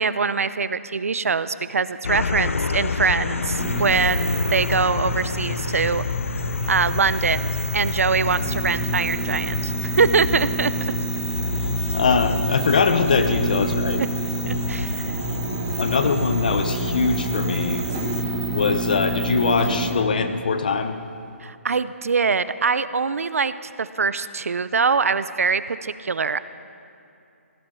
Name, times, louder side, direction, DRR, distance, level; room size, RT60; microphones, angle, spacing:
voice 1, 0.0-6.0 6.7-10.7 14.4-15.2 21.4-26.4, right 5 dB, 75° right, 14 dB, 0.6 m, -23 dB
sound 1, 2.0-18.2, left 4 dB, 65° left, 0.6 m, -29 dB
sound 2, 3.6-19.9, right 2 dB, 15° right, 1.5 m, -28 dB
voice 2, 11.9-14.0 15.0-15.2 15.8-17.8 18.5-21.0, left 5 dB, 35° left, 9 dB, 0.8 m, -22 dB
17.5 x 12.0 x 5.6 m, 2.7 s
hypercardioid pair, 175°, 8 cm